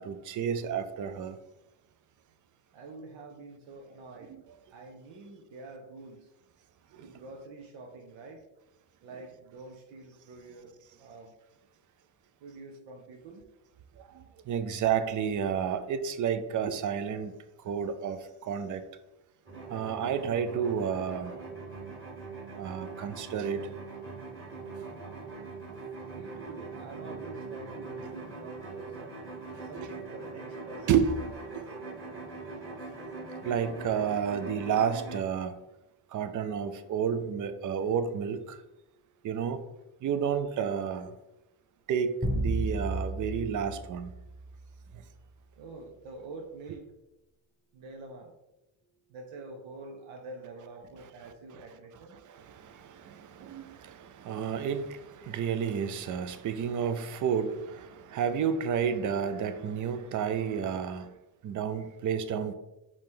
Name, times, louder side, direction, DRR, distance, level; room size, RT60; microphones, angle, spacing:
voice 1, 0.0-1.4 4.3-4.4 6.9-7.1 14.0-17.3 17.6-18.8 19.7-21.4 22.6-23.7 30.9-31.6 33.4-35.6 36.1-38.6 39.2-39.7 40.0-41.1 41.9-44.1 51.5-51.6 52.2-61.1 61.4-62.5, right 7 dB, 45° right, 0.4 m, -31 dB
voice 2, 2.7-4.4 4.7-6.3 7.0-8.4 9.0-11.3 12.4-13.4 26.1-29.2 29.6-30.9 45.6-46.8 47.7-48.3 49.1-52.2, right 3 dB, 80° right, 0.8 m, -46 dB
sound 1, 19.5-35.2, right 3 dB, 25° right, 1.6 m, -42 dB
sound 2, 42.2-44.8, right 1 dB, 5° right, 1.0 m, -33 dB
5.0 x 2.8 x 3.7 m
cardioid pair, 115°, 46 cm